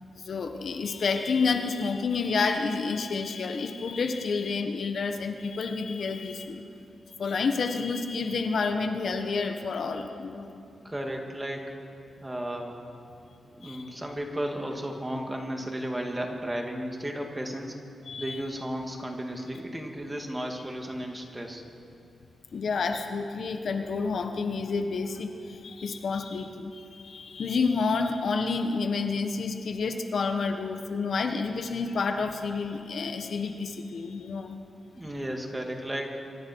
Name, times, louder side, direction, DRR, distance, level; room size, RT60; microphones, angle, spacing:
voice 1, 0.1-6.6 7.2-10.6 13.6-13.8 18.1-18.4 22.5-34.6, left 4 dB, 60° left, 6 dB, 1.3 m, -29 dB
voice 2, 10.8-11.7 12.2-12.8 13.5-17.8 18.2-21.6 34.9-36.2, equal, 15° right, 1 dB, 2.6 m, -34 dB
24.5 x 24.5 x 4.7 m, 2.6 s
wide cardioid pair, 110°, 0 cm